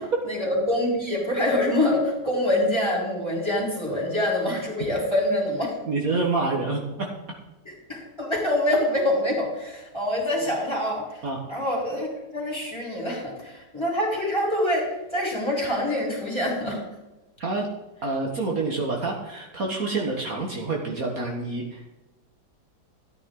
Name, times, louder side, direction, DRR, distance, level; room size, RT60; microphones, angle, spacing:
voice 1, 0.2-5.7 7.7-11.2 11.5-16.8, left 1 dB, 15° left, -3 dB, 3.9 m, -25 dB
voice 2, 5.8-7.1 11.2-11.4 17.4-17.7 18.0-21.8, right 3 dB, 50° right, -1 dB, 1.8 m, -27 dB
14.0 x 9.5 x 3.8 m, 1.0 s
omnidirectional pair, 1.9 m